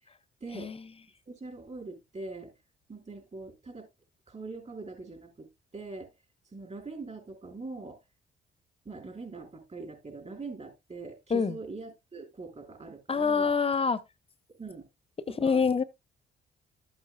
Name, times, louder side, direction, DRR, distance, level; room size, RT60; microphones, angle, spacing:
voice 1, 0.4-0.7 1.3-2.5 2.9-3.9 4.3-5.5 5.7-6.1 6.5-8.0 8.8-13.5 14.6-14.9 15.3-15.6, right 3 dB, 35° right, 4.6 m, -42 dB
voice 2, 13.1-14.0 15.4-15.8, left 5 dB, 30° left, 0.8 m, -25 dB
13.0 x 7.9 x 2.3 m
cardioid pair, 90°, 20 cm